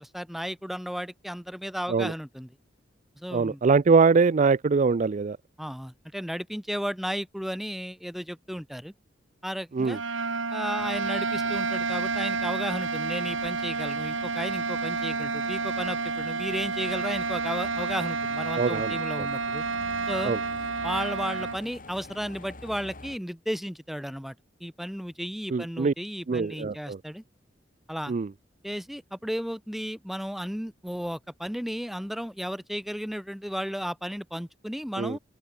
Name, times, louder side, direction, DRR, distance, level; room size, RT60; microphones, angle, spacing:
voice 1, 0.0-2.5 3.2-3.6 5.6-8.9 9.4-10.0 10.5-19.6 20.1-20.3 20.8-24.3 24.6-27.2 27.9-28.1 28.6-35.2, equal, ahead, 1.3 m, -34 dB
voice 2, 3.3-5.4 9.7-10.0 18.6-18.9 20.2-20.4 25.5-25.9 26.3-27.0 28.1-28.3 35.0-35.2, right 4 dB, 40° right, 0.4 m, -23 dB
sound 1, 9.8-21.6, right 4 dB, 80° right, 2.4 m, -30 dB
sound 2, 10.8-23.2, left 2 dB, 45° left, 4.8 m, -46 dB
open air
head